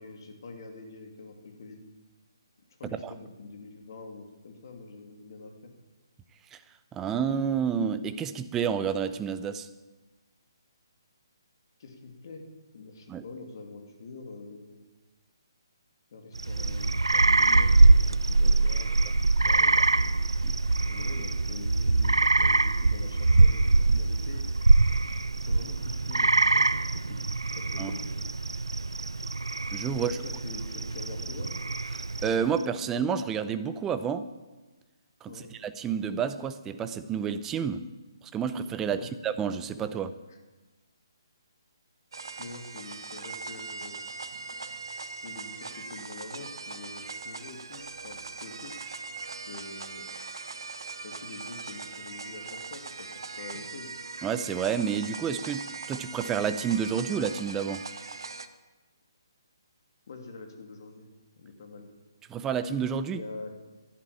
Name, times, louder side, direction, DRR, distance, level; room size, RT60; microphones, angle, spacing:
voice 1, 0.0-1.8 2.8-5.7 11.8-12.5 12.7-14.8 16.1-20.2 20.7-24.4 25.3-27.2 27.6-28.2 30.0-31.6 35.3-35.5 38.8-39.1 40.3-40.4 42.4-44.0 45.2-48.7 49.5-50.1 51.0-53.9 60.1-61.1 61.4-61.9 63.1-63.5, left 3 dB, 55° left, 4 dB, 2.7 m, -45 dB
voice 2, 6.9-9.7 13.1-13.2 20.4-20.5 27.8-27.9 29.7-30.2 32.2-34.3 35.2-37.8 38.3-40.1 54.2-57.8 62.3-63.2, right 7 dB, 15° right, 11 dB, 0.7 m, -29 dB
sound 1, 16.4-32.6, right 3 dB, 90° right, 0.4 m, -23 dB
sound 2, 42.1-58.5, right 4 dB, 70° right, 1.0 m, -40 dB
11.5 x 11.0 x 8.6 m, 1.2 s
figure-of-eight pair, 145°, 2 cm